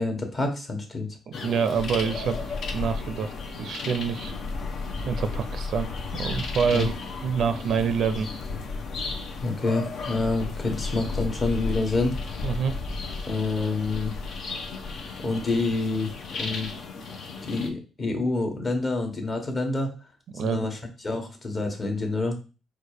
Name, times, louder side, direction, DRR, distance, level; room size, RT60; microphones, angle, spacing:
voice 1, 0.0-1.1 6.7-6.9 9.4-12.2 13.3-14.1 15.2-16.1 16.4-16.7 17.4-19.9 20.4-20.8 21.0-22.3, left 3 dB, 35° left, 4 dB, 1.3 m, -27 dB
sound 1, 1.3-17.7, left 3 dB, 65° left, 0.8 m, -33 dB
voice 2, 1.3-2.4 2.7-3.3 3.6-4.3 5.1-6.9 7.2-8.3 12.4-12.8 20.3-20.7, right 6 dB, 65° right, 10 dB, 0.4 m, -26 dB
4.4 x 2.5 x 4.8 m, 0.33 s
cardioid pair, 90°, 0 cm